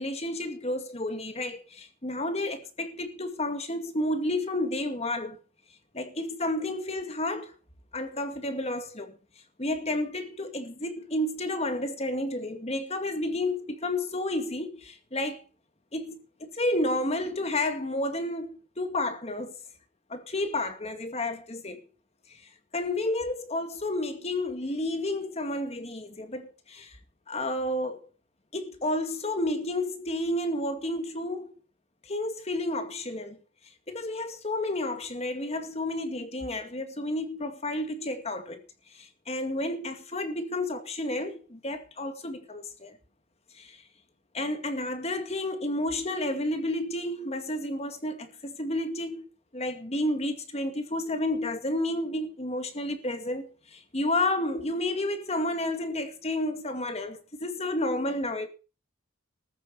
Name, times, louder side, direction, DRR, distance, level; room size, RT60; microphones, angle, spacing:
voice 1, 0.0-5.4 5.9-7.5 7.9-9.1 9.6-15.4 15.9-16.2 16.5-19.6 20.1-21.8 22.3-22.4 22.7-27.0 27.3-28.1 28.5-31.6 32.1-33.4 33.9-38.6 38.9-42.9 43.5-43.8 44.3-49.3 49.5-58.5, left 1 dB, 30° left, 2.2 m, -31 dB
14.0 x 9.2 x 6.7 m
head